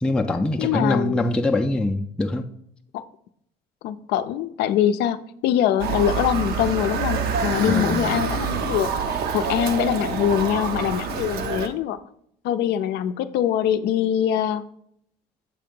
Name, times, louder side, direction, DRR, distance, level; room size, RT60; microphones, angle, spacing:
voice 1, 0.0-2.5 7.6-8.1, left 2 dB, 5° left, 3 dB, 0.4 m, -23 dB
voice 2, 0.6-1.3 2.9-3.0 3.8-8.9 9.3-12.0 12.4-14.6, left 10 dB, 80° left, 11 dB, 0.4 m, -23 dB
Motor vehicle (road) / Siren, 5.8-11.7, right 5 dB, 70° right, 0.7 m, -26 dB
7.7 x 2.8 x 5.2 m, 0.70 s
cardioid pair, 110°, 17 cm